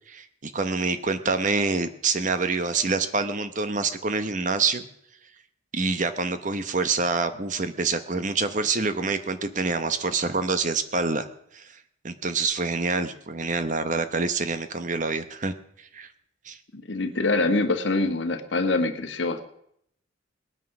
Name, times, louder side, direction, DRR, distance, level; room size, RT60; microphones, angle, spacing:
voice 1, 0.1-4.8 5.7-11.3 11.5-11.7 12.0-15.5 15.9-16.1 16.5-16.6, right 4 dB, 40° right, 11 dB, 0.9 m, -26 dB
voice 2, 16.7-19.4, left 2 dB, 70° left, 7 dB, 1.5 m, -25 dB
19.0 x 9.6 x 6.0 m, 0.72 s
head